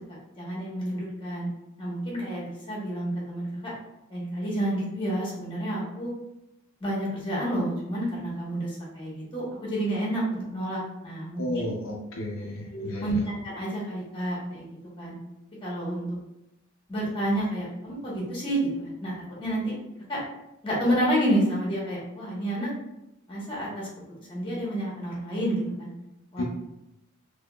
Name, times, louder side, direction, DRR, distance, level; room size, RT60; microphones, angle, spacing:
voice 1, 0.4-1.5 1.8-3.7 4.1-6.1 6.8-11.7 12.7-14.6 15.0-15.1 15.6-16.2 16.9-19.7 20.1-20.2 20.6-22.7 23.3-23.9 24.3-25.9 26.3-26.4, right 1 dB, 25° left, -6 dB, 1.1 m, -29 dB
voice 2, 11.4-13.2 26.4-26.5, left 1 dB, 70° left, -1 dB, 0.5 m, -32 dB
3.7 x 2.8 x 2.2 m, 0.89 s
head